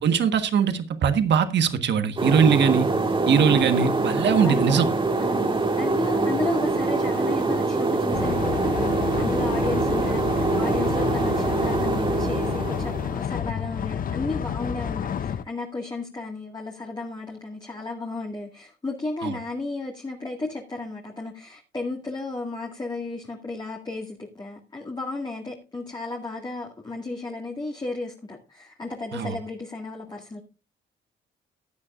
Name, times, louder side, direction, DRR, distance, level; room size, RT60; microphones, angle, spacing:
voice 1, 0.0-2.9 3.3-4.8 19.2-19.3 29.1-29.3, right 7 dB, 60° right, 1.5 m, -21 dB
sound 1, 2.2-13.2, right 3 dB, 25° right, 1.9 m, -24 dB
voice 2, 3.2-3.6 4.4-4.9 5.2-8.8 9.2-30.4, left 3 dB, 20° left, 2.1 m, -34 dB
sound 2, 8.1-15.4, left 8 dB, 45° left, 0.6 m, -30 dB
15.5 x 9.7 x 2.5 m
cardioid pair, 90°, 20 cm